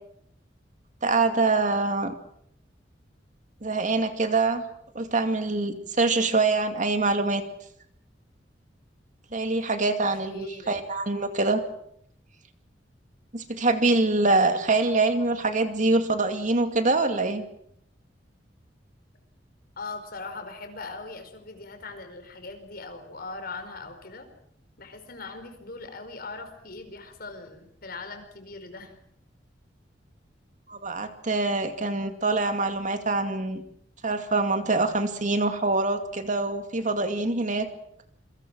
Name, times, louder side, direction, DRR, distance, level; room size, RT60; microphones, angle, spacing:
voice 1, 1.0-2.1 3.6-4.6 4.9-7.4 9.3-11.6 13.3-17.4 30.7-33.6 34.0-37.7, right 3 dB, 45° right, 7 dB, 2.4 m, -24 dB
voice 2, 10.2-10.8 19.8-24.3 24.8-28.9, left 3 dB, 55° left, 7 dB, 4.8 m, -40 dB
27.5 x 24.0 x 6.2 m, 0.69 s
head